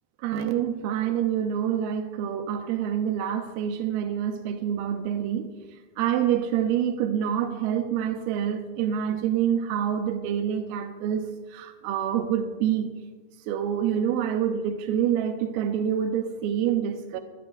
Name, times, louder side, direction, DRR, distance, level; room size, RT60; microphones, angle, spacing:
voice 1, 0.2-5.5 6.0-11.2 11.5-12.9 13.5-17.2, right 9 dB, 85° right, 6 dB, 2.8 m, -26 dB
21.0 x 12.0 x 2.6 m, 1.3 s
omnidirectional pair, 4.4 m